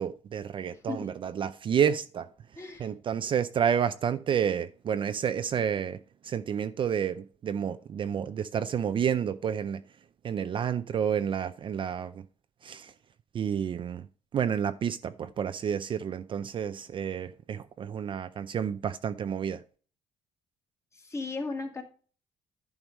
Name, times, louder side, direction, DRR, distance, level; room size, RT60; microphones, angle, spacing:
voice 1, 0.0-2.3 2.8-9.8 10.2-12.3 12.6-12.9 13.3-19.6, right 8 dB, 40° right, 0.5 m, -30 dB
voice 2, 0.7-1.1 2.6-2.9 20.9-21.8, left 3 dB, 20° left, 2.1 m, -36 dB
11.0 x 4.7 x 5.3 m
cardioid pair, 140°, 13 cm